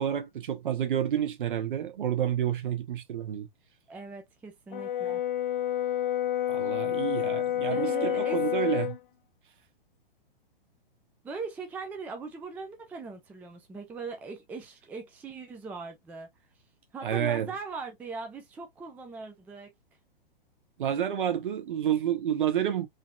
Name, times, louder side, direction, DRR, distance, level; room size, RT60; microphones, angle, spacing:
voice 1, 0.0-3.5 6.5-8.9 17.0-17.5 20.8-22.9, right 10 dB, 60° right, 1.1 m, -29 dB
voice 2, 3.9-5.2 7.7-8.7 11.2-16.3 16.9-19.7, right 4 dB, 5° right, 0.4 m, -40 dB
Brass instrument, 4.7-9.0, left 11 dB, 60° left, 0.6 m, -29 dB
3.8 x 2.7 x 2.3 m
figure-of-eight pair, 110°, 29 cm